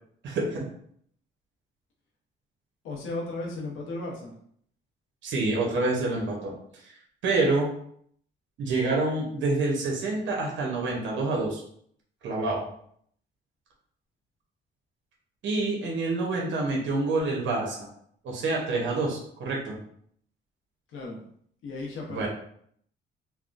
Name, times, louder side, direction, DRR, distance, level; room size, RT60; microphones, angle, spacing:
voice 1, 0.2-0.6 5.2-6.9 7.2-7.7 8.6-11.6 12.2-12.7 15.4-17.9 18.2-19.8 22.1-22.3, right 3 dB, 70° right, -1 dB, 0.9 m, -27 dB
voice 2, 2.8-4.3 20.9-21.2 21.6-22.3, left 2 dB, 85° left, -1 dB, 0.9 m, -35 dB
3.4 x 2.1 x 2.5 m, 0.64 s
cardioid pair, 90°, 20 cm